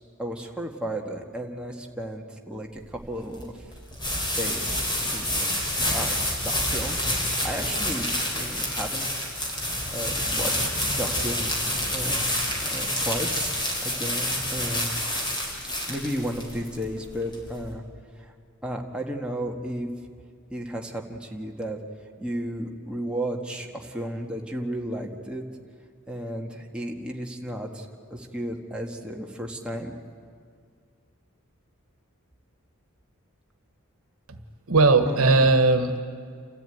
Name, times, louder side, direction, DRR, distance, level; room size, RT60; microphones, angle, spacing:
voice 1, 0.2-3.6 4.3-6.2 6.4-8.1 8.3-9.2 9.6-11.5 11.9-12.3 12.6-13.5 13.8-14.9 15.9-17.8 18.2-18.3 18.6-19.9 20.5-21.8 22.2-25.4 26.1-29.9 35.1-35.4, equal, 5° right, 0 dB, 1.7 m, -34 dB
sound 1, 2.8-17.7, left 1 dB, 20° left, 4.2 m, -28 dB
voice 2, 34.7-36.1, right 3 dB, 80° right, 8 dB, 1.4 m, -19 dB
29.0 x 13.5 x 9.2 m, 2.1 s
head